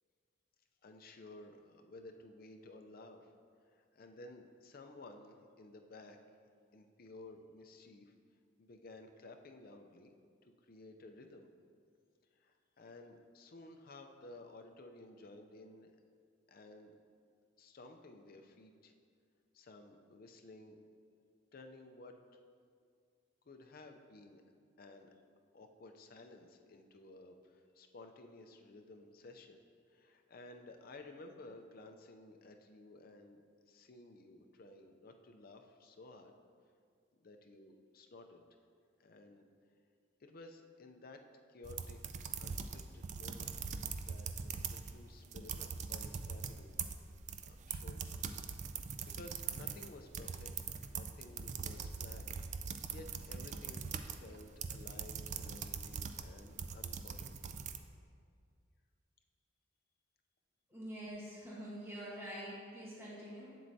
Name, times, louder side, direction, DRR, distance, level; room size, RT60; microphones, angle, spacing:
voice 1, 0.8-3.3 3.6-6.2 6.7-8.1 8.6-10.1 10.4-11.5 12.3-16.0 16.5-16.9 17.6-18.9 19.5-20.8 21.5-22.2 23.4-24.4 24.8-25.1 25.5-36.3 37.1-38.4 39.0-39.4 40.2-41.2 41.5-46.9 47.4-48.3 48.7-50.5 50.9-52.4 52.9-57.5, left 2 dB, 50° left, 5 dB, 0.5 m, -55 dB
sound 1, 41.6-45.0 45.2-57.8, right 6 dB, 40° right, 0.3 m, -42 dB
voice 2, 60.7-63.5, equal, 15° right, -7 dB, 1.3 m, -46 dB
7.6 x 7.6 x 2.7 m, 2.2 s
head